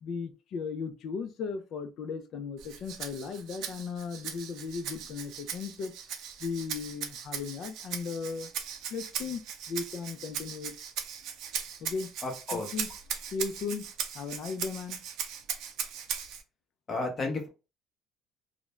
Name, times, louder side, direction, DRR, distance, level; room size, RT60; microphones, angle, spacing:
voice 1, 0.0-5.9 6.4-8.5 8.9-9.4 9.7-10.7 11.8-12.1 12.5-12.9 13.3-13.9 14.1-15.0, left 5 dB, 55° left, 0.4 m, -36 dB
Rattle (instrument), 2.6-16.4, right 8 dB, 75° right, 0.5 m, -39 dB
voice 2, 12.2-12.7 16.9-17.5, left 3 dB, 30° left, 0.8 m, -32 dB
2.4 x 2.1 x 3.0 m
cardioid pair, 150°, 0 cm